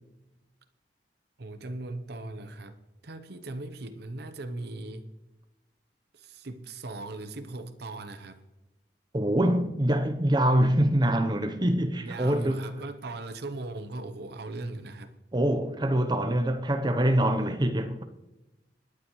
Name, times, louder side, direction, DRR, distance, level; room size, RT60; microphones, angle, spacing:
voice 1, 1.4-2.8 3.0-5.0 6.1-8.4 12.0-15.1, right 2 dB, 65° right, 0.8 m, -39 dB
voice 2, 9.1-12.7 15.3-18.0, right 1 dB, 25° right, 0.8 m, -24 dB
26.0 x 9.8 x 3.1 m
head